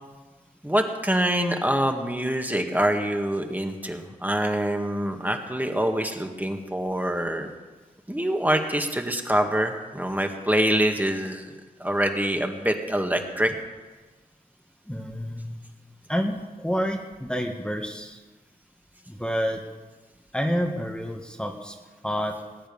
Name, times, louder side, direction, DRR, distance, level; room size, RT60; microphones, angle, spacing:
voice 1, 0.6-7.5 8.1-11.5 11.8-13.5, right 1 dB, 10° right, 4 dB, 2.1 m, -25 dB
voice 2, 14.9-15.6 16.1-18.2 19.1-19.6 20.3-21.8 22.0-22.4, equal, 5° left, 1 dB, 1.9 m, -28 dB
20.0 x 8.8 x 7.2 m, 1.3 s
cardioid pair, 45°, 15 cm